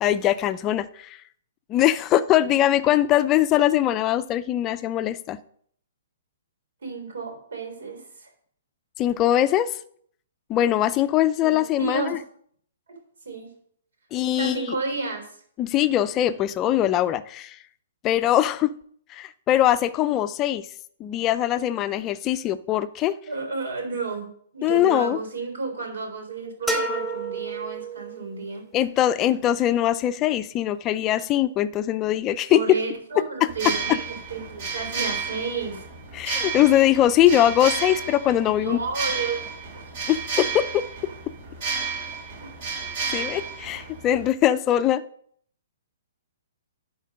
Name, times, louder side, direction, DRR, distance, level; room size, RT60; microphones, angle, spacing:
voice 1, 0.0-1.2 1.7-5.4 9.0-9.7 10.5-12.0 14.1-14.8 15.6-17.6 18.0-18.7 19.1-20.6 21.0-23.1 24.6-25.2 28.7-32.8 36.1-38.8 40.1-40.8 43.1-45.0, left 12 dB, 25° left, 14 dB, 0.4 m, -21 dB
voice 2, 6.8-8.3 11.4-12.1 13.3-13.5 14.4-15.3 23.3-28.6 32.5-35.8 38.6-39.8 42.4-42.5, right 4 dB, 80° right, 3 dB, 3.7 m, -32 dB
sound 1, 26.7-28.4, right 2 dB, 5° right, 1.4 m, -29 dB
sound 2, 33.5-44.3, right 5 dB, 50° right, 3.0 m, -32 dB
11.0 x 4.4 x 5.2 m, 0.62 s
hypercardioid pair, 145°, 0 cm